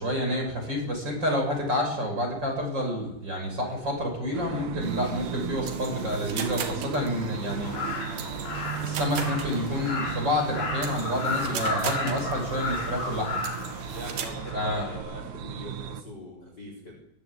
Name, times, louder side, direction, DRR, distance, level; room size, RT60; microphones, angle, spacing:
voice 1, 0.0-7.7 8.8-13.4 14.5-14.9, left 1 dB, 25° right, 2 dB, 7.0 m, -29 dB
sound 1, 4.3-16.0, right 9 dB, 85° right, 1.6 m, -35 dB
sound 2, 4.8-14.3, right 8 dB, 65° right, 3.8 m, -39 dB
Crow, 7.6-15.0, left 3 dB, 60° left, 6.4 m, -34 dB
voice 2, 13.9-17.0, equal, 25° left, 2 dB, 4.2 m, -41 dB
22.5 x 15.0 x 8.6 m, 0.78 s
omnidirectional pair, 5.2 m